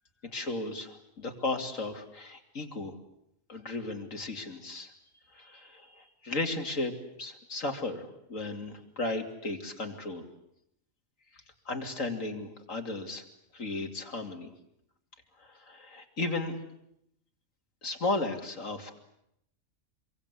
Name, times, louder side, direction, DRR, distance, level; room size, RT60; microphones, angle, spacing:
voice 1, 0.2-2.9 3.5-4.9 5.3-6.9 7.2-10.2 11.6-13.2 13.5-14.5 15.4-16.5 17.8-19.0, left 2 dB, 80° left, 4 dB, 3.3 m, -35 dB
26.5 x 24.0 x 8.5 m, 0.78 s
omnidirectional pair, 1.3 m